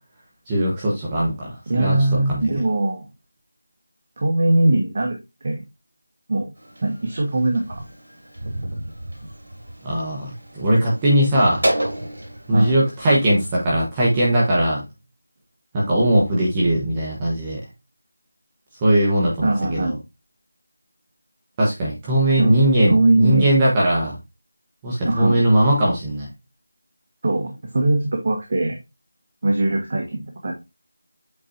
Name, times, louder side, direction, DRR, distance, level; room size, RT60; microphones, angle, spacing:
voice 1, 0.5-2.4 9.8-11.7 12.5-14.8 15.7-17.6 18.8-19.9 21.6-24.1 24.8-26.3, right 1 dB, 15° right, -6 dB, 1.3 m, -19 dB
voice 2, 1.7-3.0 4.2-5.2 5.4-5.6 6.3-6.5 6.8-7.8 12.5-12.7 19.4-20.0 22.4-22.6 22.8-23.6 25.0-25.4 27.2-28.8 29.4-30.5, right 2 dB, 40° right, 2 dB, 1.2 m, -21 dB
sound 1, 6.6-13.6, right 1 dB, 75° right, 3.8 m, -31 dB
8.1 x 4.2 x 2.7 m, 0.23 s
figure-of-eight pair, 175°, 0 cm